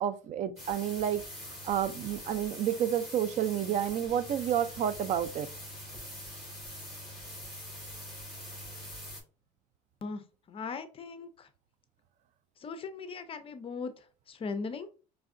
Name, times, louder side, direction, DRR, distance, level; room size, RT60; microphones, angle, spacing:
voice 1, 0.0-1.2 1.6-5.5, right 10 dB, 45° right, 0.5 m, -30 dB
sound 1, 0.6-9.2, left 1 dB, ahead, 2.3 m, -44 dB
voice 2, 10.0-11.5 12.6-13.9 14.3-14.9, left 4 dB, 30° left, 0.6 m, -39 dB
4.6 x 3.3 x 2.5 m
cardioid pair, 125°, 17 cm